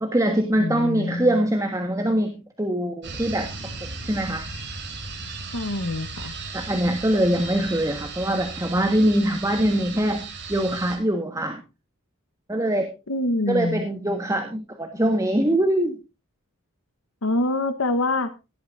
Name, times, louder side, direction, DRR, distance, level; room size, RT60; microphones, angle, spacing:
voice 1, 0.0-3.5 4.0-4.5 6.5-10.2 10.5-11.6 12.5-12.9 13.5-16.0, right 1 dB, 15° right, 5 dB, 1.4 m, -23 dB
voice 2, 0.6-1.4 5.5-6.3 13.1-13.9 17.2-18.3, left 2 dB, 70° left, 10 dB, 1.2 m, -25 dB
sound 1, 3.0-11.0, right 4 dB, 55° right, 3.9 m, -36 dB
17.0 x 12.0 x 2.6 m, 0.27 s
head